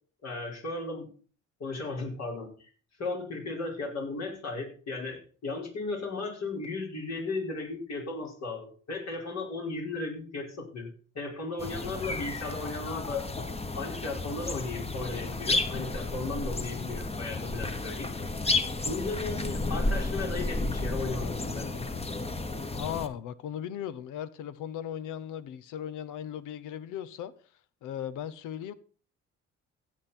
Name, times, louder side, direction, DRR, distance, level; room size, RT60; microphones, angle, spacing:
voice 1, 0.2-1.1 1.6-2.7 3.0-10.9 11.1-13.3 13.8-18.1 18.8-21.9, left 3 dB, 60° left, 5.3 m, -35 dB
sound 1, 11.6-23.1, left 2 dB, 20° left, 1.2 m, -32 dB
voice 2, 22.7-27.3 27.8-28.7, left 10 dB, 90° left, 0.9 m, -37 dB
15.5 x 8.5 x 4.4 m
cardioid pair, 90°, 30 cm